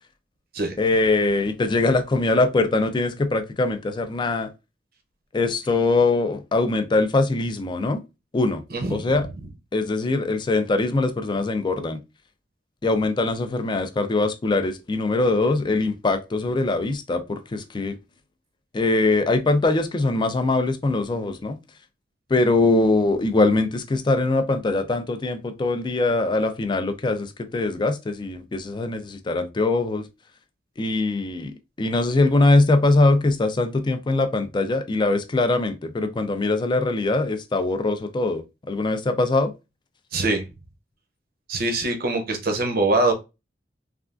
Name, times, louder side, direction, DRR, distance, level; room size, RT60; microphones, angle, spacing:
voice 1, 0.8-4.5 5.3-8.0 8.3-8.6 8.9-9.3 9.7-12.0 12.8-18.0 18.7-21.6 22.3-30.1 30.8-39.5, left 2 dB, 25° left, 0.4 m, -22 dB
voice 2, 8.7-9.0 40.1-40.4 41.5-43.1, right 2 dB, 55° right, 0.6 m, -23 dB
3.3 x 2.3 x 2.4 m
head